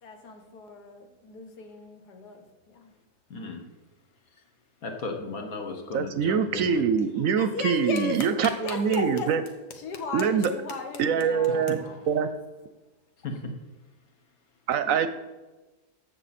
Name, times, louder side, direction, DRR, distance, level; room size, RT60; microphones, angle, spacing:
voice 1, 0.0-2.9 7.4-9.3 9.7-12.0, left 4 dB, 85° left, 1.7 m, -36 dB
voice 2, 3.3-3.6 4.8-6.8 13.2-13.5 14.8-14.9, left 3 dB, 65° left, 1.7 m, -35 dB
voice 3, 5.9-9.4 10.1-10.5 11.0-11.8 12.1-12.3 14.7-15.1, right 7 dB, 70° right, 0.9 m, -24 dB
14.0 x 6.0 x 4.2 m
omnidirectional pair, 1.7 m